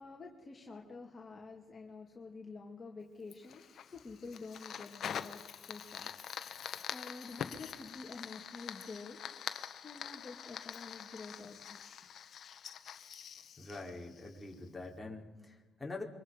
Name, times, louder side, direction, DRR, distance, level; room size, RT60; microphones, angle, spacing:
voice 1, 0.0-9.2 9.8-11.8, left 3 dB, 35° left, -1 dB, 2.3 m, -49 dB
Fire, 3.3-14.7, left 8 dB, 60° left, 1.1 m, -45 dB
voice 2, 13.6-16.0, left 2 dB, 10° left, -1 dB, 4.0 m, -45 dB
27.0 x 24.0 x 5.3 m, 1.2 s
cardioid pair, 90°, 0 cm